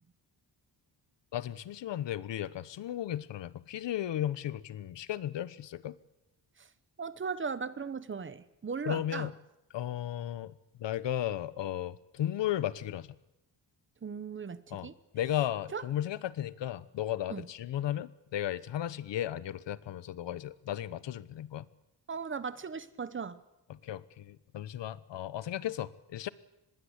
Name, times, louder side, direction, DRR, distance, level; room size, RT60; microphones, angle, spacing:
voice 1, 1.3-6.0 8.9-9.3 9.7-13.1 14.7-14.9 15.1-21.7 23.7-26.3, left 11 dB, 80° left, 17 dB, 1.1 m, -35 dB
voice 2, 7.0-9.3 14.0-14.9 15.7-15.8 17.3-17.5 22.1-23.4, right 5 dB, 30° right, 14 dB, 1.0 m, -37 dB
25.0 x 21.0 x 8.1 m, 0.87 s
wide cardioid pair, 175°, 42 cm